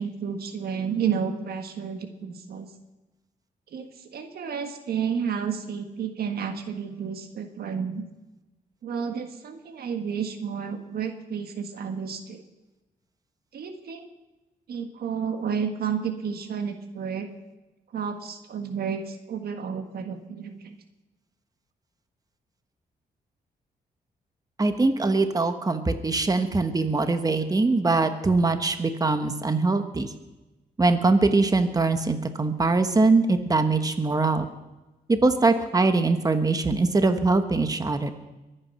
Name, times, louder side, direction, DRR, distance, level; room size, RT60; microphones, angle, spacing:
voice 1, 0.0-2.7 3.7-8.0 8.8-12.4 13.5-14.1 14.7-17.3 17.9-20.7, right 7 dB, 75° right, 7 dB, 1.6 m, -31 dB
voice 2, 24.6-30.1 30.8-34.4 35.1-38.1, right 3 dB, 25° right, 8 dB, 1.3 m, -22 dB
22.5 x 9.0 x 5.6 m, 1.1 s
cardioid pair, 85°, 16 cm